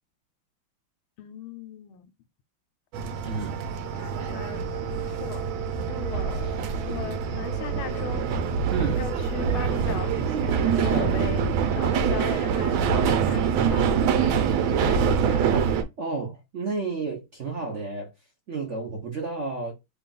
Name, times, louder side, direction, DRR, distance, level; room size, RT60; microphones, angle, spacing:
voice 1, 1.2-2.1 3.9-5.5 5.9-8.4 8.9-14.4 14.6-15.5, left 10 dB, 85° left, 1.5 m, -39 dB
sound 1, 2.9-15.8, right 7 dB, 80° right, 1.4 m, -25 dB
voice 2, 3.2-3.6 8.7-9.1 10.8-11.2 15.3-15.7 16.0-18.1 18.5-19.7, right 4 dB, 55° right, 0.8 m, -31 dB
3.4 x 2.4 x 3.8 m
omnidirectional pair, 2.3 m